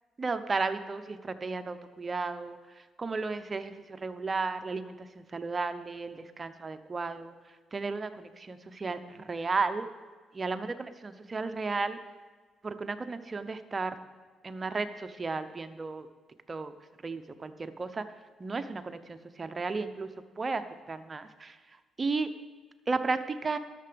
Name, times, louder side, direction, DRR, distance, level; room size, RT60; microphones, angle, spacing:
voice 1, 0.2-7.3 7.7-9.9 10.3-12.0 12.6-13.9 14.4-16.1 16.5-16.7 17.0-18.0 18.4-20.1 20.4-21.6 22.0-22.3 22.9-23.6, right 4 dB, 30° right, 9 dB, 0.8 m, -34 dB
12.0 x 6.8 x 6.9 m, 1.3 s
cardioid pair, 90°, 0 cm